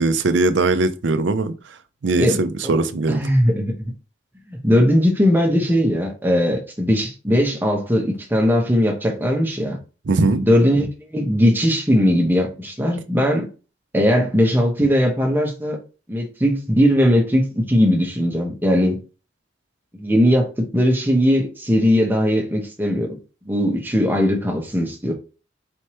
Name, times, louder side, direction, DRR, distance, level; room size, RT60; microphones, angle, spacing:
voice 1, 0.0-3.2 10.1-10.4, right 3 dB, 80° right, 0.5 m, -20 dB
voice 2, 3.1-3.7 4.5-9.8 10.4-13.5 13.9-15.8 16.1-19.0 19.9-23.2 23.5-25.1, equal, 10° right, 1.0 m, -19 dB
4.3 x 3.3 x 3.0 m
head